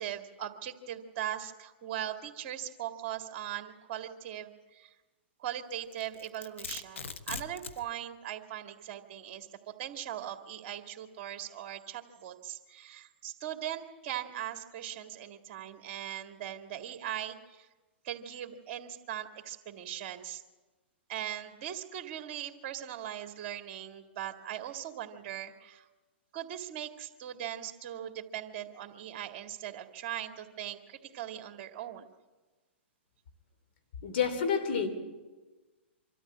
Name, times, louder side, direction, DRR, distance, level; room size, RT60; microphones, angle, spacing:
voice 1, 0.0-4.9 5.4-17.7 18.0-20.4 21.1-25.9 26.3-32.1, right 11 dB, 45° right, 5 dB, 2.1 m, -40 dB
Domestic sounds home sounds, 5.9-7.8, left 5 dB, 90° left, 1.1 m, -41 dB
voice 2, 34.0-34.9, left 6 dB, 60° left, 7 dB, 3.1 m, -28 dB
25.0 x 13.5 x 8.7 m, 1.3 s
hypercardioid pair, 130°, 6 cm